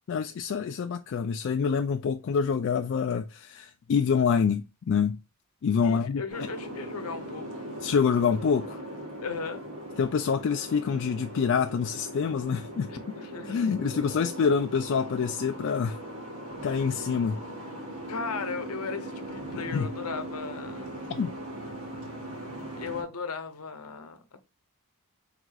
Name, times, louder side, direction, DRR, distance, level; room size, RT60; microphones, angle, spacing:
voice 1, 0.1-5.2 5.6-6.5 7.8-8.8 10.0-12.9 13.5-16.0 16.6-17.4 19.5-19.9 21.1-21.3, left 6 dB, 55° left, 0.3 m, -26 dB
voice 2, 5.8-7.7 9.2-9.6 12.9-13.6 18.1-21.0 22.7-24.4, left 5 dB, 75° left, 0.8 m, -37 dB
Boat Water vehicle, 6.3-23.0, right 1 dB, 70° right, 1.4 m, -39 dB
4.7 x 3.7 x 2.3 m
head